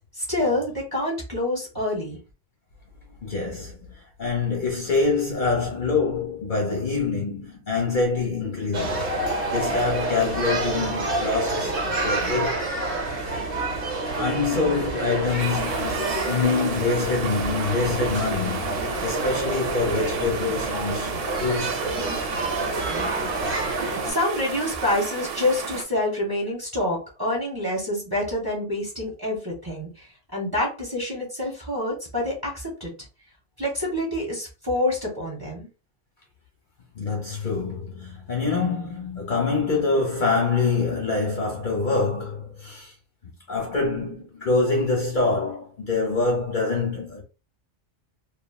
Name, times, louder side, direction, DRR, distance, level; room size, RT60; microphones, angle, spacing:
voice 1, 0.2-2.2 23.6-23.7 24.0-30.1 30.3-32.9 33.6-35.7, left 1 dB, 20° right, 0.9 m, -27 dB
voice 2, 3.2-9.1 9.5-12.6 13.6-13.8 14.2-21.1 21.4-22.3 37.0-42.9 43.5-47.2, left 4 dB, 45° left, 0.9 m, -25 dB
sound 1, 8.7-24.1, right 2 dB, 50° right, 1.0 m, -28 dB
sound 2, 15.4-25.8, right 6 dB, 90° right, 1.0 m, -33 dB
3.0 x 2.3 x 2.3 m
omnidirectional pair, 1.2 m